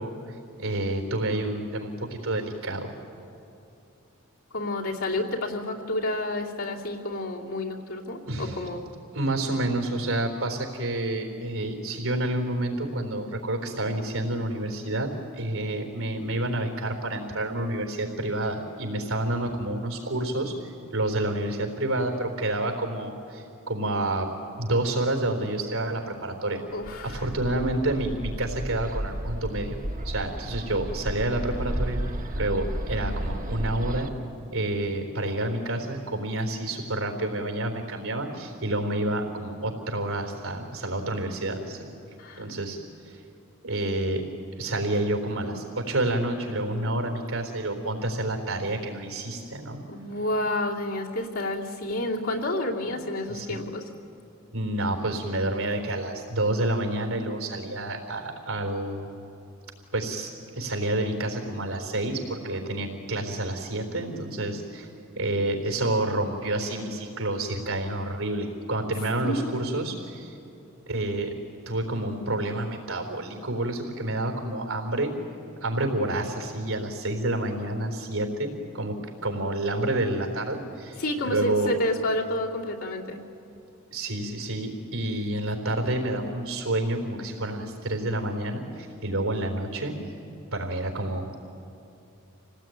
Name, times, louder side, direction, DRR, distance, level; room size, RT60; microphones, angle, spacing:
voice 1, 0.0-2.9 8.3-8.7 9.1-24.3 24.6-26.6 27.0-29.8 30.0-32.0 32.3-34.1 34.5-41.9 42.4-42.8 43.1-43.2 43.6-44.2 44.6-49.8 52.9-53.0 53.3-53.6 54.5-59.1 59.9-64.9 65.2-70.4 70.9-71.3 71.7-75.1 75.6-79.0 79.2-81.7 83.9-90.0 90.5-91.4, right 1 dB, 85° right, 4 dB, 4.0 m, -29 dB
voice 2, 4.5-8.9 26.7-27.2 42.2-42.4 49.9-53.8 69.2-69.9 81.0-83.2, left 1 dB, 75° left, -2 dB, 2.8 m, -30 dB
Bird, 26.8-34.1, right 1 dB, 40° right, 1.2 m, -33 dB
27.5 x 18.5 x 9.3 m, 2.7 s
head